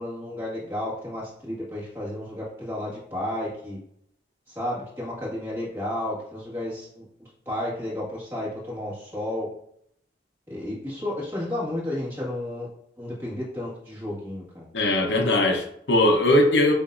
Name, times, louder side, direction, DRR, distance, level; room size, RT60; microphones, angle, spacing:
voice 1, 0.0-3.8 4.5-9.5 10.5-12.7 13.0-14.7, left 1 dB, 15° right, -6 dB, 1.7 m, -32 dB
voice 2, 14.7-16.7, left 1 dB, 75° left, 3 dB, 0.8 m, -20 dB
6.9 x 2.6 x 2.5 m, 0.69 s
head